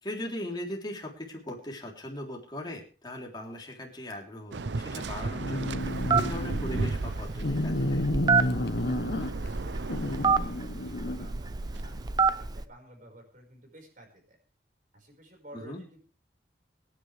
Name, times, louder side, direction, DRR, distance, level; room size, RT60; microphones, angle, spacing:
voice 1, 0.0-8.0 15.5-15.8, left 1 dB, 25° left, -1 dB, 3.6 m, -39 dB
Waves surf, 4.5-12.1, right 3 dB, 85° right, 0.7 m, -36 dB
sound 1, 5.4-6.9 7.4-9.5 9.9-11.3, left 1 dB, 65° left, 1.1 m, -31 dB
Telephone, 5.8-12.6, right 5 dB, 25° right, 0.6 m, -29 dB
voice 2, 8.8-14.4 14.9-16.0, right 1 dB, 50° right, 2 dB, 5.4 m, -52 dB
24.5 x 9.8 x 3.4 m, 0.39 s
head